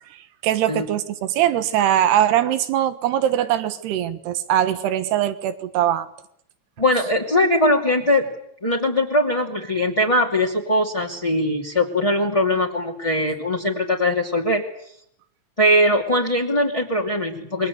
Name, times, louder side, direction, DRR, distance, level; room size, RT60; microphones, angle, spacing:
voice 1, 0.1-6.1, right 11 dB, 85° right, 11 dB, 3.5 m, -21 dB
voice 2, 6.8-8.3 8.6-14.6 15.6-17.7, left 1 dB, 10° left, -2 dB, 1.7 m, -21 dB
27.5 x 22.5 x 8.1 m, 0.71 s
omnidirectional pair, 4.6 m